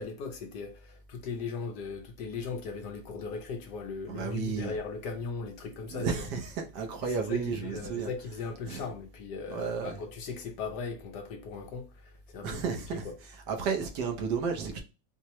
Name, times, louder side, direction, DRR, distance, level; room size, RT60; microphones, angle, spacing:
voice 1, 0.0-6.3 7.0-12.6 12.9-13.1, left 4 dB, 70° left, 1.2 m, -38 dB
voice 2, 4.1-4.7 5.9-8.1 8.7-8.8 9.5-10.0 12.4-13.0 13.5-14.8, right 5 dB, 70° right, 1.2 m, -32 dB
4.6 x 2.1 x 2.9 m
omnidirectional pair, 2.0 m